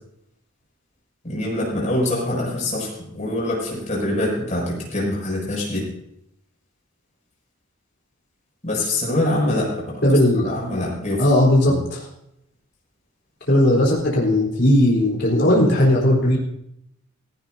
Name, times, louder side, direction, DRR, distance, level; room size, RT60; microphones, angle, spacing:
voice 1, 1.2-5.8 8.6-9.7 10.3-11.3 11.6-11.8, left 1 dB, 35° left, -3 dB, 6.6 m, -24 dB
voice 2, 10.0-10.6 11.2-12.0 13.5-16.4, left 1 dB, 50° left, -3 dB, 3.7 m, -17 dB
17.0 x 15.5 x 2.7 m, 0.77 s
head